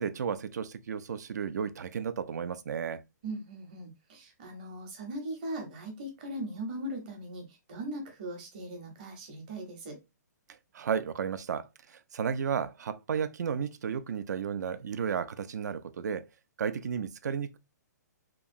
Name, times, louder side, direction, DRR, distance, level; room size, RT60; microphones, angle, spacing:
voice 1, 0.0-3.0 10.7-16.3 16.6-17.6, right 7 dB, 70° right, 0.4 m, -33 dB
voice 2, 3.2-10.0, right 1 dB, 25° right, 0.7 m, -39 dB
2.9 x 2.3 x 2.5 m
hypercardioid pair, 175°, 10 cm